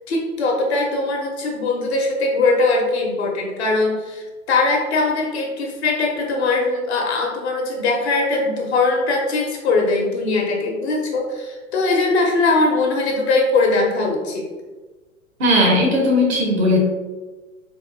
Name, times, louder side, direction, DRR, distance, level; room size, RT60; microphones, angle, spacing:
voice 1, 0.1-14.5, left 3 dB, 50° left, 0 dB, 1.0 m, -20 dB
voice 2, 15.4-16.8, left 1 dB, 50° right, -1 dB, 1.2 m, -17 dB
3.9 x 3.4 x 2.7 m, 1.3 s
figure-of-eight pair, 105°, 40 cm